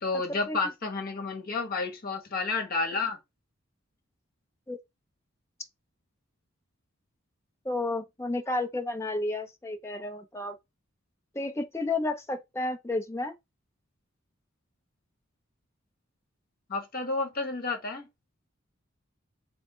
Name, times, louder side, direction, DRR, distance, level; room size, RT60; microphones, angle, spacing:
voice 1, 0.0-3.2 16.7-18.1, left 3 dB, 45° left, 1.3 m, -31 dB
voice 2, 7.6-10.6 11.3-13.3, left 2 dB, 15° left, 0.6 m, -31 dB
3.4 x 3.1 x 4.3 m
head